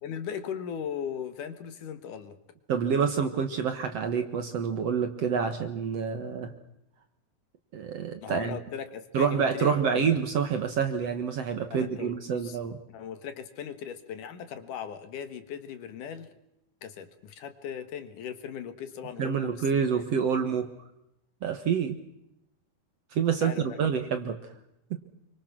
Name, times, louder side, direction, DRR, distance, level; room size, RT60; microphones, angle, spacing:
voice 1, 0.0-2.4 8.2-10.1 11.7-12.6 12.9-16.3 16.8-19.7 23.4-23.8, left 8 dB, 65° left, 10 dB, 2.9 m, -38 dB
voice 2, 2.7-6.5 7.7-8.6 9.1-12.8 19.2-20.7 21.4-22.0 23.1-24.4 24.9-25.0, right 6 dB, 55° right, 8 dB, 2.0 m, -27 dB
27.5 x 24.5 x 6.0 m, 0.82 s
omnidirectional pair, 4.1 m